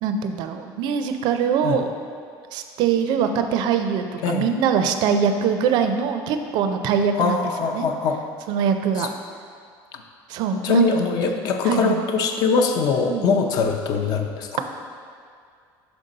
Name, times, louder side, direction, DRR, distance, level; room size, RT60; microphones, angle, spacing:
voice 1, 0.0-1.9 2.5-7.4 7.7-7.9 8.5-9.1 10.3-12.0 13.1-13.4, right 7 dB, 55° right, 7 dB, 0.4 m, -23 dB
voice 2, 7.2-8.2 9.0-9.1 9.9-10.0 10.6-14.6, left 4 dB, 50° left, 4 dB, 0.5 m, -22 dB
5.9 x 5.3 x 3.9 m, 2.2 s
cardioid pair, 170°, 9 cm